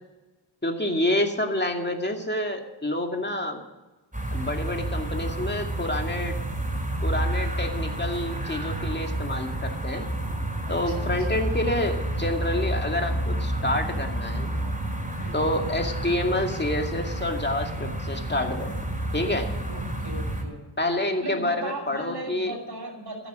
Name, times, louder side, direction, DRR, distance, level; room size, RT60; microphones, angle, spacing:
voice 1, 0.6-3.6 4.3-6.4 7.0-10.1 10.7-14.6 15.3-18.7 19.1-19.5 20.8-22.5, left 1 dB, 25° left, 3 dB, 2.4 m, -28 dB
sound 1, 4.1-20.4, right 1 dB, 20° right, 4.7 m, -30 dB
voice 2, 10.6-11.4 15.2-15.6 19.7-20.6 21.2-23.3, right 2 dB, 65° right, 0 dB, 6.2 m, -37 dB
14.0 x 10.5 x 8.1 m, 1.1 s
wide cardioid pair, 70°, 42 cm